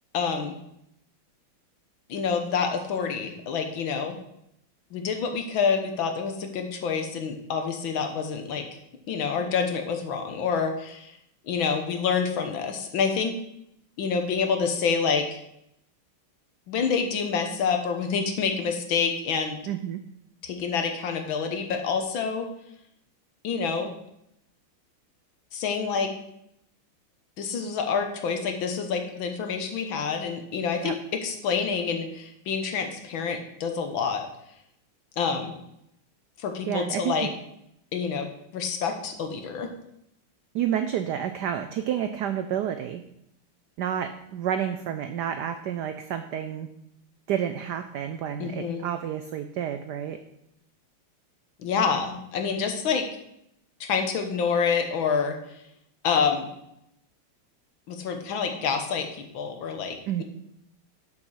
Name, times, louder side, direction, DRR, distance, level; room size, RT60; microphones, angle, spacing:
voice 1, 0.1-0.6 2.1-4.2 4.9-8.7 9.1-11.1 11.4-13.4 14.0-15.4 16.7-19.6 20.4-22.5 23.4-23.9 25.5-26.1 27.4-34.3 35.2-35.5 36.4-37.3 37.9-38.3 38.5-39.7 48.4-48.8 51.6-53.1 53.8-55.4 56.0-56.5 57.9-59.1 59.3-60.2, left 6 dB, 70° left, 5 dB, 1.7 m, -27 dB
voice 2, 19.7-20.0 30.8-30.9 36.7-37.3 40.5-43.0 43.8-46.7 47.3-50.2 60.1-60.2, right 9 dB, 80° right, 8 dB, 0.9 m, -30 dB
7.2 x 5.2 x 6.2 m, 0.77 s
omnidirectional pair, 2.4 m